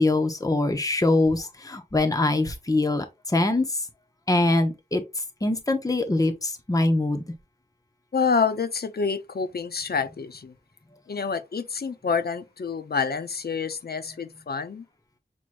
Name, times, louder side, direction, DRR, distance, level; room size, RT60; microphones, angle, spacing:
voice 1, 0.0-3.7 4.3-5.0 5.4-7.2, left 2 dB, 20° left, 0.8 m, -23 dB
voice 2, 8.1-10.5 11.1-14.8, left 5 dB, 65° left, 0.6 m, -27 dB
6.1 x 3.0 x 2.5 m
wide cardioid pair, 55°, 17 cm